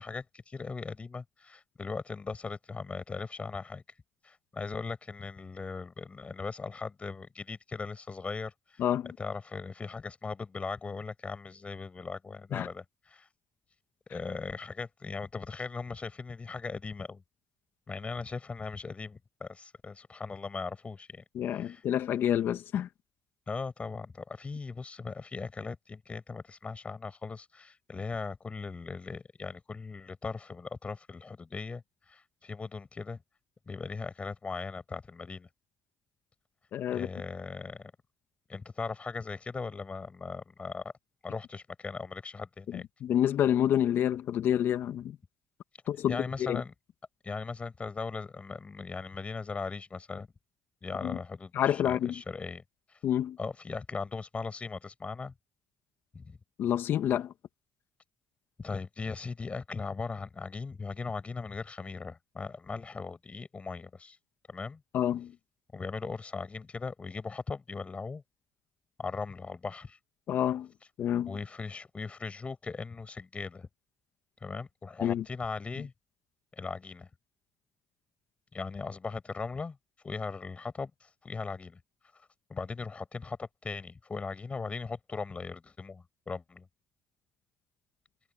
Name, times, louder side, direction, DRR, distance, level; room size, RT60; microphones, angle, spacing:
voice 1, 0.0-3.8 4.2-13.3 14.1-17.2 17.9-21.2 21.5-21.8 23.5-31.8 32.1-33.2 33.7-35.5 36.9-37.9 38.5-40.9 41.2-42.8 46.1-46.7 47.2-50.3 50.8-52.6 53.4-55.3 56.1-56.4 58.6-64.2 64.5-64.8 65.7-68.2 69.0-70.0 71.3-73.7 74.4-75.9 76.6-77.1 78.5-79.8 80.0-81.8 82.5-86.7, left 4 dB, 30° left, 6.6 m, -39 dB
voice 2, 8.8-9.1 12.5-12.7 21.3-22.9 36.7-37.1 42.7-45.2 45.9-46.6 51.0-51.2 51.5-52.1 53.0-53.4 56.6-57.3 64.9-65.3 70.3-70.7 71.0-71.3 75.0-75.2, left 10 dB, 65° left, 1.9 m, -28 dB
supercardioid pair, 70°, 4 cm